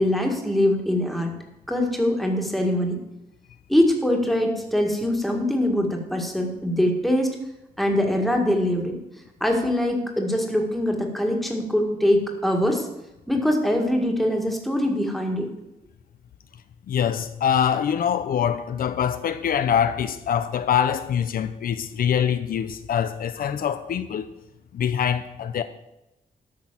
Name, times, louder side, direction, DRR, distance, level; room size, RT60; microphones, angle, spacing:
voice 1, 0.0-1.3 1.7-3.0 3.7-7.4 7.8-9.0 9.4-12.9 13.3-15.5, left 1 dB, ahead, 1.9 m, -23 dB
voice 2, 16.9-24.3 24.7-25.6, left 8 dB, 70° left, 0.6 m, -24 dB
12.5 x 6.2 x 7.5 m
wide cardioid pair, 155°, 16 cm